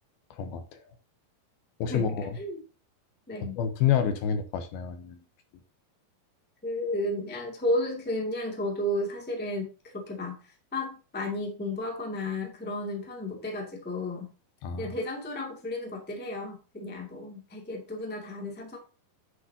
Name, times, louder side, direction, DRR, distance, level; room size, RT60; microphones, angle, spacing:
voice 1, 0.3-0.9 1.8-2.4 3.4-5.2 14.6-15.0, left 8 dB, 75° left, 8 dB, 2.7 m, -29 dB
voice 2, 6.6-9.7 9.9-14.3 14.8-18.8, left 1 dB, 5° left, 0 dB, 1.2 m, -33 dB
9.9 x 7.7 x 2.8 m, 0.34 s
omnidirectional pair, 4.6 m